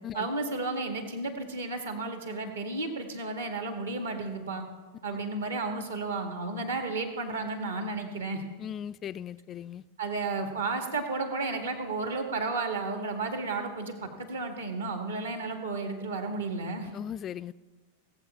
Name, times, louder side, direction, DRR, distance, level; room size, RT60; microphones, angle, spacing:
voice 1, 0.1-4.6 5.0-8.4 10.0-17.0, right 3 dB, 70° right, 1.9 m, -33 dB
voice 2, 8.6-9.8 16.8-17.5, left 9 dB, 30° left, 0.3 m, -38 dB
18.0 x 8.2 x 4.8 m
figure-of-eight pair, 90°, 0 cm